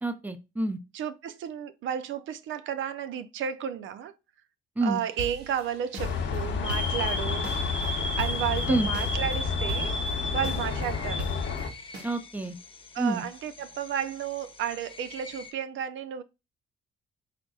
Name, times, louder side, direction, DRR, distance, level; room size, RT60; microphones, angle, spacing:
voice 1, 0.0-0.8 4.8-5.0 8.7-8.9 12.0-12.6 13.0-13.2, right 2 dB, 10° right, 0.6 m, -28 dB
voice 2, 0.9-4.1 4.8-7.5 8.2-10.0 10.3-11.3 12.9-16.2, right 9 dB, 75° right, 0.5 m, -32 dB
sound 1, 5.0-12.0, right 2 dB, 55° right, 1.6 m, -42 dB
sound 2, 6.0-11.7, left 5 dB, 65° left, 0.9 m, -31 dB
sound 3, 6.6-15.5, left 2 dB, 25° left, 0.9 m, -36 dB
5.0 x 4.0 x 2.3 m
cardioid pair, 90°, 20 cm